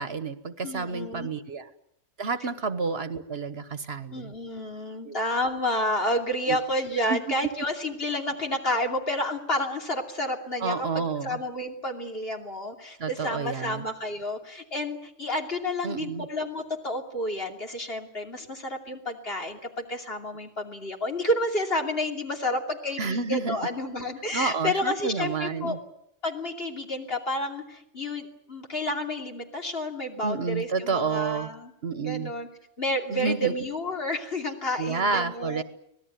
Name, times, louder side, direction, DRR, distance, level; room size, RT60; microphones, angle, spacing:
voice 1, 0.0-1.7 2.2-4.3 5.0-5.1 6.5-6.6 7.1-7.2 10.6-11.4 13.0-13.8 15.8-16.2 23.0-23.6 24.3-25.8 30.2-31.5 31.8-32.3 33.1-33.5 34.8-35.6, right 4 dB, 55° right, 12 dB, 1.4 m, -29 dB
voice 2, 0.6-1.3 2.4-2.5 4.1-25.8 26.2-31.7 32.0-32.5 32.8-35.6, left 1 dB, 50° left, 3 dB, 3.1 m, -30 dB
25.0 x 18.5 x 9.3 m, 0.74 s
omnidirectional pair, 1.3 m